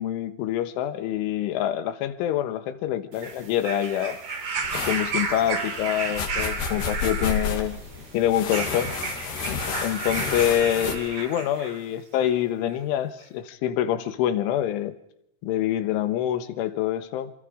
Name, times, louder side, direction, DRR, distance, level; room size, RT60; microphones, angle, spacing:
voice 1, 0.0-4.2 4.9-7.8 8.1-8.9 9.8-14.9 15.4-17.3, left 11 dB, 85° left, 11 dB, 3.7 m, -26 dB
sound 1, 3.1-11.8 12.7-12.8, right 5 dB, 45° right, 4.4 m, -33 dB
sound 2, 4.6-11.0, left 6 dB, 60° left, 4.7 m, -32 dB
29.0 x 28.0 x 5.1 m, 0.75 s
omnidirectional pair, 5.5 m